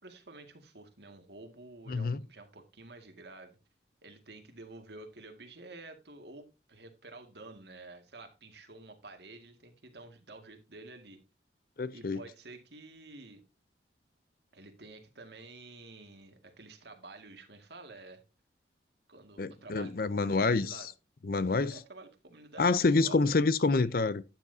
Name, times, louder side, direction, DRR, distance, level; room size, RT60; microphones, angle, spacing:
voice 1, 0.0-3.6 4.0-11.2 11.9-13.4 14.5-18.2 19.1-20.9 21.7-23.2, right 2 dB, 70° right, 2.0 m, -50 dB
voice 2, 1.9-2.2 11.8-12.2 19.4-20.8 21.2-21.8 22.6-24.2, left 3 dB, 55° left, 0.6 m, -27 dB
12.0 x 8.8 x 2.7 m
head